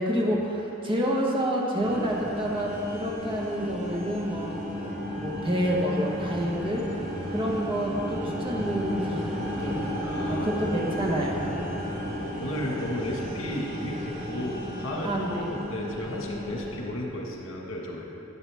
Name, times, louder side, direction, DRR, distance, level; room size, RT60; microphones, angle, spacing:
voice 1, 0.0-4.6 5.2-6.9 7.3-9.3 9.6-9.8 10.3-11.4 15.0-15.4, equal, 25° right, -2 dB, 1.2 m, -28 dB
sound 1, 1.8-16.9, equal, 75° right, 1.9 m, -34 dB
voice 2, 10.0-10.6 12.4-18.1, left 1 dB, 85° left, -1 dB, 1.5 m, -33 dB
11.5 x 7.9 x 3.5 m, 3.0 s
head